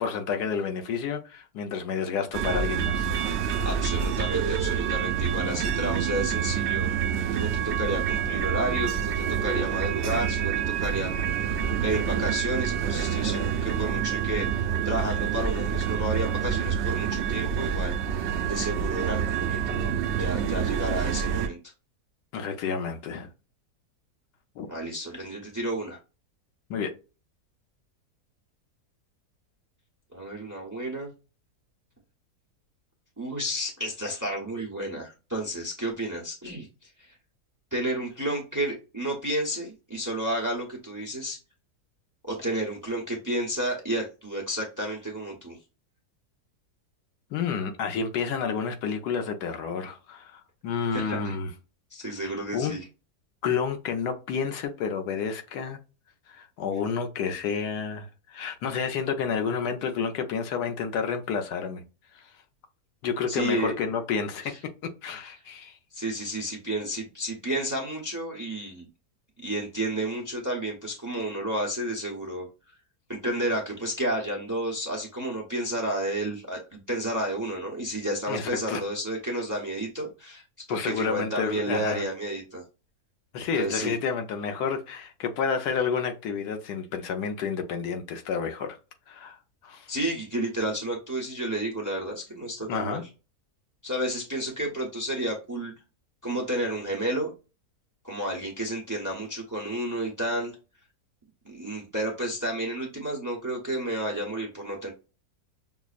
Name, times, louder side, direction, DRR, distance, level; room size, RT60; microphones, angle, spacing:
voice 1, 0.0-3.1 22.3-23.3 24.6-24.7 26.7-26.9 47.3-51.5 52.5-52.7 53.4-55.8 56.3-61.8 62.1-62.2 63.0-64.5 65.0-65.8 78.3-78.8 80.7-82.0 83.3-88.8 89.1-89.4 89.6-89.9 92.7-93.0, left 6 dB, 80° left, 1.3 m, -30 dB
sound 1, 2.3-21.5, right 8 dB, 85° right, 0.6 m, -27 dB
voice 2, 3.6-6.9 7.3-11.1 11.4-18.0 18.5-21.6 24.7-26.0 30.1-31.1 33.2-37.1 37.7-41.4 42.2-45.6 50.9-51.4 51.9-52.8 63.3-63.9 64.4-64.6 65.9-68.9 69.4-72.5 73.1-80.4 80.7-82.6 83.5-83.9 89.9-93.1 93.8-95.7 96.2-97.3 98.0-100.5 101.4-104.9, right 1 dB, 15° right, 0.6 m, -31 dB
6.0 x 2.0 x 2.4 m
omnidirectional pair, 1.7 m